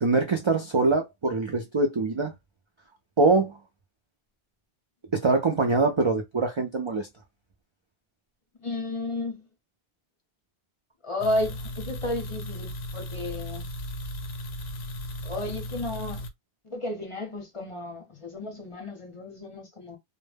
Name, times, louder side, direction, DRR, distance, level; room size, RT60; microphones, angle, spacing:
voice 1, 0.0-2.3 3.2-3.6 5.1-7.1, right 3 dB, 50° right, 0.3 m, -23 dB
voice 2, 8.6-9.5 11.0-13.7 15.2-16.2 16.6-20.0, left 1 dB, 35° left, 0.6 m, -33 dB
sound 1, 11.2-16.3, equal, 85° left, 0.8 m, -36 dB
2.1 x 2.1 x 3.2 m
omnidirectional pair, 1.1 m